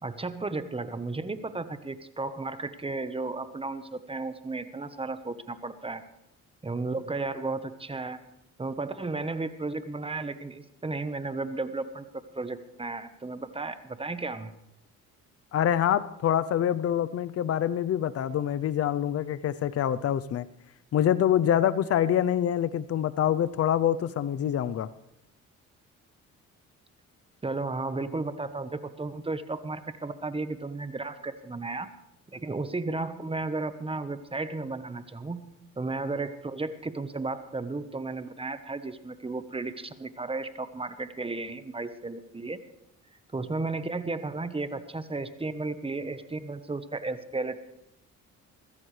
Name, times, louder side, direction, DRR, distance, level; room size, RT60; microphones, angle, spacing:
voice 1, 0.0-6.0 6.6-8.2 8.6-12.1 12.3-14.5 27.4-31.9 32.3-35.4 35.8-42.6 43.3-47.6, right 3 dB, 20° right, 11 dB, 1.1 m, -34 dB
voice 2, 15.5-20.5 20.9-24.9, left 10 dB, 50° left, 14 dB, 0.7 m, -25 dB
21.5 x 15.5 x 3.3 m, 0.83 s
cardioid pair, 90°, 30 cm